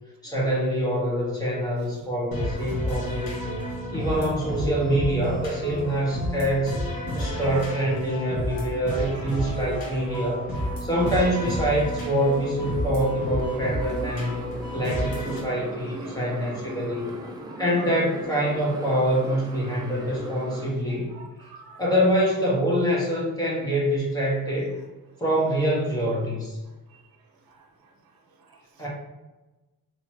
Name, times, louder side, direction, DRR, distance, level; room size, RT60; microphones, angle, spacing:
voice 1, 0.2-3.4 3.9-6.8 7.1-10.5 10.8-17.1 17.6-21.1 21.4-21.5 21.8-24.7 25.2-26.6 28.8-28.9, equal, 10° left, -5 dB, 1.4 m, -25 dB
sound 1, 2.3-15.4, left 1 dB, 80° left, 1.1 m, -31 dB
voice 2, 2.5-2.8 4.6-4.8 5.3-6.4 7.1-7.4 7.9-8.2 8.7-8.9 9.3-9.6 10.1-10.2 10.8-11.2 12.3-12.4 13.2-13.4 13.8-14.8 15.2-15.5 15.9-16.2 16.5-18.0 19.6-20.1 20.5-20.6 21.0-21.8 26.6-27.1 27.4-28.9, right 2 dB, 85° right, 3 dB, 0.7 m, -46 dB
Motorcycle, 11.0-20.7, right 1 dB, 10° right, 0.5 m, -40 dB
3.9 x 3.0 x 3.0 m, 1.1 s
cardioid pair, 110°, 35 cm